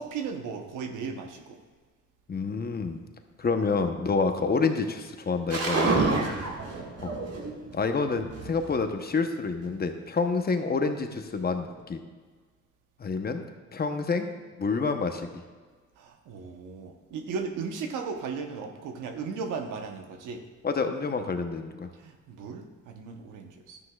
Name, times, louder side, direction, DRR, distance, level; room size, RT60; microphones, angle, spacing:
voice 1, 0.0-1.6 6.1-6.3 16.0-20.4 21.9-23.8, right 5 dB, 85° right, 5 dB, 1.0 m, -36 dB
voice 2, 2.3-3.0 3.4-6.0 7.0-7.1 7.7-12.0 13.0-13.4 13.7-14.3 14.6-15.4 20.6-21.9, left 4 dB, 30° left, 6 dB, 0.9 m, -28 dB
sound 1, 5.5-7.7 8.1-8.9 9.6-9.7 11.4-11.8, right 3 dB, 55° right, 1.8 m, -29 dB
12.0 x 9.8 x 2.4 m, 1.5 s
cardioid pair, 90°, 30 cm